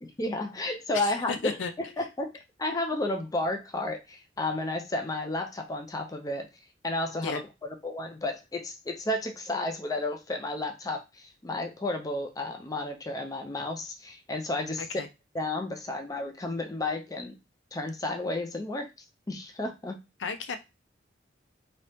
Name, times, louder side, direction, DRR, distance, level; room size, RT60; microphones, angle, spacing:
voice 1, 0.0-1.4 1.8-2.3 2.6-6.5 6.8-7.4 7.8-14.8 15.3-17.4 17.7-18.9 19.3-20.0, left 2 dB, 20° left, 0.4 m, -32 dB
voice 2, 0.9-1.7 7.2-7.4 14.8-15.1 20.2-20.6, left 5 dB, 80° left, 0.5 m, -33 dB
2.7 x 2.7 x 3.3 m
head